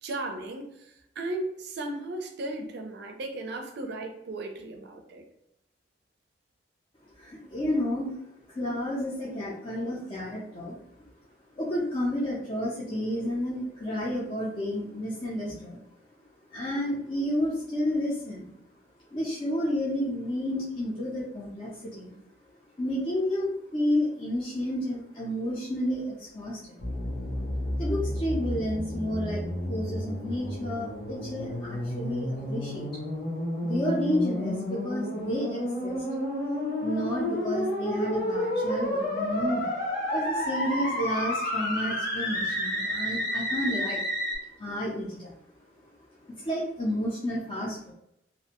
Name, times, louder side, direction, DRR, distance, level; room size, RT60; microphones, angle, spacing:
voice 1, 0.0-5.2, right 2 dB, 65° right, 4 dB, 0.4 m, -36 dB
voice 2, 7.2-8.2 8.5-10.8 11.6-15.8 16.5-18.5 19.1-22.1 22.8-26.8 27.8-29.4 29.7-32.9 33.6-36.0 36.8-39.8 40.1-44.0 44.6-45.3 46.2-47.9, left 1 dB, 30° left, -6 dB, 0.5 m, -31 dB
sound 1, 26.8-44.4, left 1 dB, 55° left, 0.8 m, -31 dB
2.5 x 2.1 x 2.8 m, 0.78 s
head